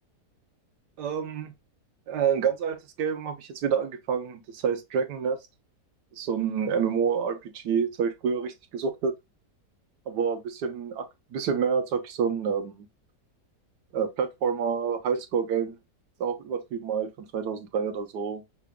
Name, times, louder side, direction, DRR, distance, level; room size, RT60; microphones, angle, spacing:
voice 1, 1.0-1.5 2.1-5.4 6.2-9.1 10.1-11.0 11.3-12.9 13.9-15.7 16.2-18.4, right 6 dB, 80° right, 1.4 m, -28 dB
5.6 x 2.3 x 3.6 m
omnidirectional pair, 1.8 m